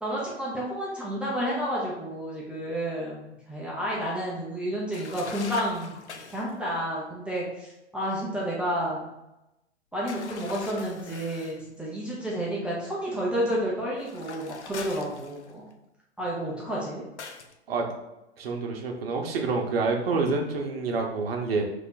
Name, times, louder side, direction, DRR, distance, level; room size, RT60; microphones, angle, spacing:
voice 1, 0.0-6.0 6.3-9.1 9.9-15.6 16.2-17.1, equal, 5° right, -6 dB, 0.5 m, -30 dB
sound 1, 4.9-6.5 10.1-11.6 14.0-15.7 17.2-17.5, left 5 dB, 85° left, 0.5 m, -42 dB
voice 2, 18.4-21.6, right 4 dB, 60° right, 2 dB, 0.9 m, -27 dB
3.3 x 2.8 x 3.9 m, 0.94 s
figure-of-eight pair, 105°, 34 cm